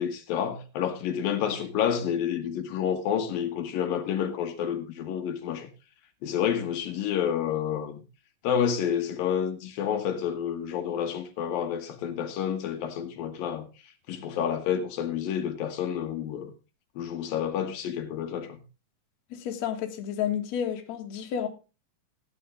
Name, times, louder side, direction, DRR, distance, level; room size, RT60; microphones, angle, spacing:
voice 1, 0.0-5.7 6.2-8.0 8.4-13.7 14.1-16.5 17.0-18.6, left 8 dB, 80° left, 3.1 m, -29 dB
voice 2, 19.3-21.5, left 9 dB, 55° left, 2.6 m, -31 dB
16.0 x 9.5 x 3.6 m
omnidirectional pair, 4.0 m